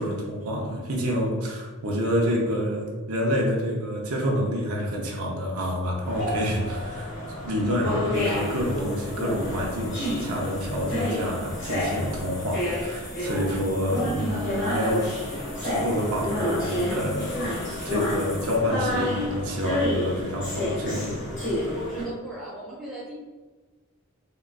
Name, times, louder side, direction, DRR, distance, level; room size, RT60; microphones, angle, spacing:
voice 1, 0.0-7.1 7.4-15.1 15.6-21.2, equal, 80° right, -1 dB, 0.6 m, -28 dB
sound 1, 6.1-22.0, left 1 dB, 55° left, 1.3 m, -29 dB
sound 2, 8.1-18.6, left 2 dB, 15° left, 0.4 m, -44 dB
voice 2, 21.7-23.1, right 1 dB, ahead, -7 dB, 1.0 m, -37 dB
3.7 x 2.3 x 2.2 m, 1.3 s
head